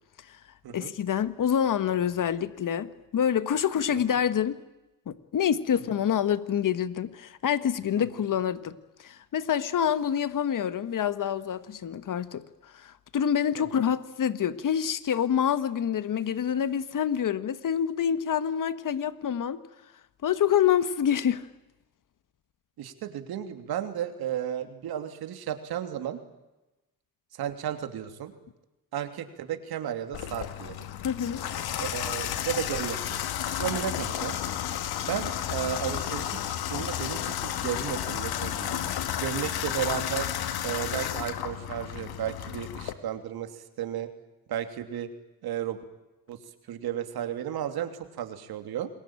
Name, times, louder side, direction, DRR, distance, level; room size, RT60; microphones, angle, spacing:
voice 1, 0.7-4.6 5.1-8.8 9.0-12.4 12.7-19.6 20.2-21.4 31.0-31.4, left 9 dB, 60° left, 13 dB, 1.6 m, -27 dB
voice 2, 22.8-26.2 27.3-28.3 28.9-30.9 31.8-33.2 33.6-34.4 35.0-38.8 39.2-40.3 40.6-44.1 44.5-45.1 45.4-45.8 46.3-46.4 46.7-48.9, right 10 dB, 85° right, 7 dB, 3.0 m, -34 dB
Water tap faucet / Bathtub (filling or washing), 30.1-42.9, left 10 dB, 85° left, 2.1 m, -32 dB
27.5 x 22.0 x 9.0 m, 1.0 s
cardioid pair, 80°, 36 cm